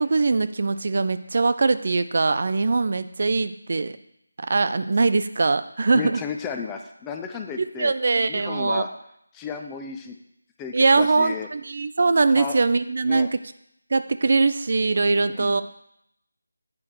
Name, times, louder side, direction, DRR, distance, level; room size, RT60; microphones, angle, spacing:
voice 1, 0.0-4.0 4.4-6.2 7.6-8.8 10.7-13.4 13.9-15.6, right 3 dB, 50° right, 12 dB, 0.4 m, -22 dB
voice 2, 5.9-7.9 8.3-8.9 9.3-10.2 10.6-11.5 12.4-12.5 13.0-13.3 15.2-15.6, left 6 dB, 10° left, 4 dB, 0.4 m, -33 dB
8.5 x 4.8 x 4.6 m, 0.75 s
figure-of-eight pair, 165°, 0 cm